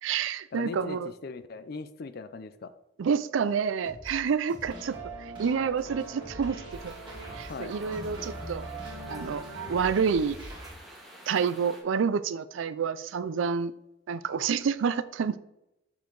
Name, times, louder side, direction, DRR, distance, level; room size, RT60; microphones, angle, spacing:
voice 1, 0.0-1.1 3.0-6.9 7.3-8.7 9.1-9.4 9.7-10.4 11.3-13.7 14.1-15.4, right 6 dB, 85° right, 15 dB, 0.4 m, -28 dB
voice 2, 0.5-2.7 7.4-7.7, left 4 dB, 50° left, 12 dB, 0.5 m, -39 dB
sound 1, 3.8-10.7, right 1 dB, 25° right, 2.2 m, -46 dB
sound 2, 4.6-9.8, right 2 dB, 70° right, 1.6 m, -41 dB
sound 3, 6.7-11.8, right 1 dB, ahead, 1.8 m, -51 dB
7.2 x 4.6 x 3.9 m, 0.89 s
head